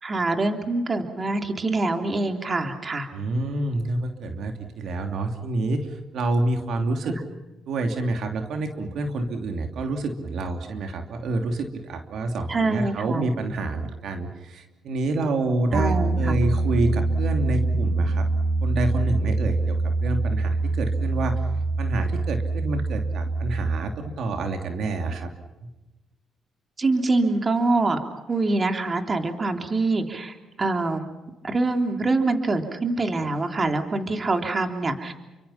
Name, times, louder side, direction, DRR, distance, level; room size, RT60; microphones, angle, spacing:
voice 1, 0.0-3.1 7.0-7.2 12.5-13.3 15.7-16.4 26.8-28.0 28.3-31.0 31.4-35.1, right 2 dB, 30° right, 5 dB, 3.3 m, -25 dB
voice 2, 3.1-7.2 7.7-18.3 18.6-21.4 21.8-25.3, right 2 dB, 70° right, 5 dB, 3.0 m, -28 dB
Piano, 15.7-23.8, right 3 dB, 45° right, 5.3 m, -24 dB
30.0 x 24.5 x 5.8 m, 1.1 s
cardioid pair, 90°, 0 cm